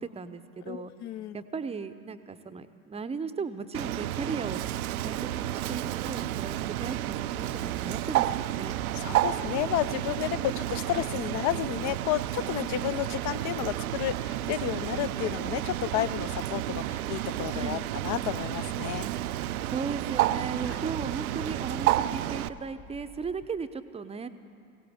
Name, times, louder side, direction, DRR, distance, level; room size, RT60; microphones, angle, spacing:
voice 1, 0.0-0.9 1.3-4.6 5.0-8.8 10.3-10.6 17.5-17.8 19.7-24.3, right 5 dB, 15° right, 11 dB, 0.7 m, -36 dB
voice 2, 0.7-1.4 9.0-19.1, left 13 dB, 40° left, 15 dB, 0.5 m, -32 dB
Bird, 3.7-22.5, right 14 dB, 75° right, 0.5 m, -31 dB
sound 1, 4.5-23.4, left 3 dB, 75° left, 2.9 m, -51 dB
22.0 x 17.0 x 3.6 m, 2.3 s
figure-of-eight pair, 65°, 44 cm